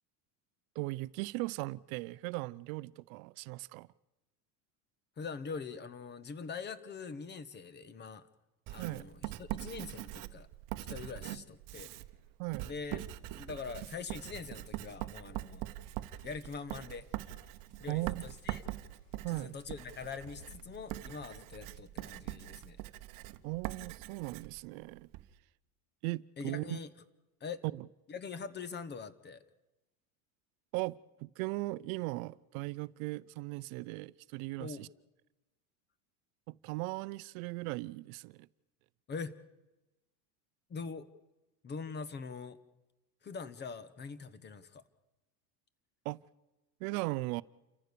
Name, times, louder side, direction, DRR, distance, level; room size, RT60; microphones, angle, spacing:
voice 1, 0.8-3.9 8.8-9.1 12.4-12.7 17.9-18.2 19.2-19.6 23.4-25.1 26.0-26.8 27.8-27.9 30.7-34.9 36.5-38.5 46.0-46.2 46.8-47.4, right 22 dB, 65° right, 0.7 m, -38 dB
voice 2, 5.2-8.3 8.7-10.5 10.9-11.9 12.6-13.0 13.3-15.6 16.2-17.1 17.8-18.6 19.3-22.8 26.4-26.9 27.4-27.6 28.1-29.4 34.6-34.9 39.1-39.4 40.7-41.1 41.6-42.6 43.2-44.8, left 5 dB, 25° left, 1.1 m, -43 dB
Writing, 8.7-25.3, right 16 dB, 45° right, 1.0 m, -43 dB
sound 1, 16.0-21.6, left 5 dB, 75° left, 2.9 m, -63 dB
29.0 x 14.5 x 6.8 m
cardioid pair, 145°, 45 cm